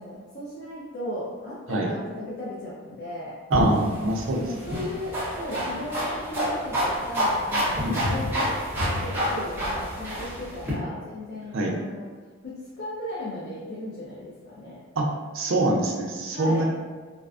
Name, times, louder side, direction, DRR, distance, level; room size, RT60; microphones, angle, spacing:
voice 1, 0.0-3.4 4.3-8.6 9.0-12.1 12.4-14.8 16.3-16.6, left 1 dB, 50° left, -7 dB, 0.4 m, -36 dB
sound 1, 3.5-10.7, equal, 10° right, 0.6 m, -28 dB
voice 2, 3.5-4.4 7.8-8.0 11.5-11.7 15.0-15.1 15.3-16.6, right 2 dB, 65° right, -1 dB, 0.4 m, -24 dB
2.4 x 2.2 x 2.3 m, 1.5 s
head